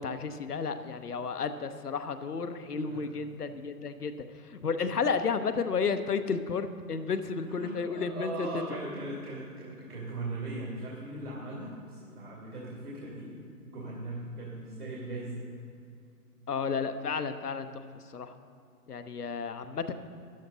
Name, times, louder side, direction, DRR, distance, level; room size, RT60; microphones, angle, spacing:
voice 1, 0.0-4.1 4.4-8.5 16.5-17.7 18.1-18.3 18.9-19.9, left 5 dB, 70° left, 9 dB, 0.9 m, -32 dB
voice 2, 2.8-3.2 7.4-13.3 13.6-15.4, right 2 dB, 70° right, -4 dB, 2.7 m, -39 dB
13.0 x 10.5 x 4.0 m, 2.4 s
figure-of-eight pair, 135°, 47 cm